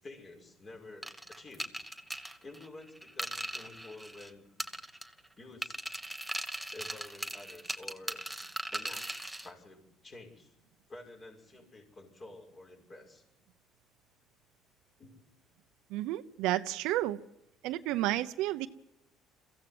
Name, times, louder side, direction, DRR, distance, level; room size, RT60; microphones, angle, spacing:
voice 1, 0.0-1.1 1.3-1.7 2.4-4.5 5.4-5.8 6.7-8.2 8.7-9.1 9.4-10.5 10.9-13.2 15.0-15.2, left 2 dB, 35° left, 2 dB, 6.2 m, -50 dB
sound 1, 1.0-4.3 4.6-5.3 5.6-9.5, right 1 dB, 5° right, 1.3 m, -39 dB
voice 2, 15.9-17.2 17.6-18.7, right 15 dB, 80° right, 10 dB, 0.8 m, -31 dB
22.5 x 15.5 x 7.9 m, 0.90 s
cardioid pair, 105°, 0 cm